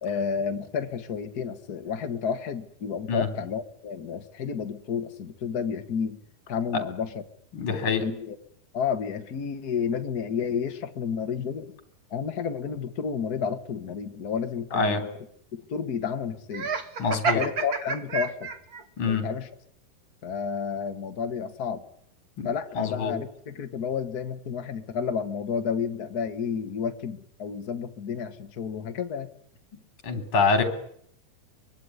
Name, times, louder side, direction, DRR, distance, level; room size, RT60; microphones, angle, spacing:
voice 1, 0.0-6.2 6.5-7.2 7.7-8.4 8.7-11.7 12.1-15.0 15.5-16.7 17.3-18.5 19.0-19.5 20.2-21.8 22.4-29.3, left 6 dB, 60° left, 7 dB, 1.0 m, -31 dB
voice 2, 7.5-8.0 14.7-15.0 17.0-17.4 19.0-19.3 22.4-22.5 22.7-23.1 30.0-30.6, left 4 dB, 35° left, 8 dB, 4.0 m, -25 dB
Laughter, 16.5-18.8, right 5 dB, 50° right, 1.0 m, -29 dB
24.5 x 22.5 x 9.7 m, 0.68 s
omnidirectional pair, 4.4 m